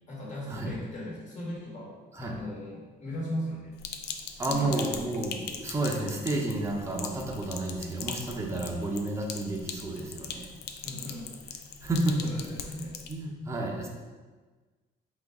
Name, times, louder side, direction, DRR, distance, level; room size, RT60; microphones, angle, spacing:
voice 1, 0.1-3.8 4.5-4.9 8.5-8.7 10.8-11.6 12.2-13.0, left 1 dB, 45° left, -5 dB, 1.4 m, -38 dB
Sink (filling or washing), 3.8-13.1, left 7 dB, 75° left, 0.4 m, -41 dB
voice 2, 4.4-10.5 11.8-12.3 12.7-12.8 13.1-13.9, right 2 dB, 15° right, -1 dB, 0.7 m, -31 dB
3.8 x 3.3 x 3.5 m, 1.3 s
cardioid pair, 110°, 17 cm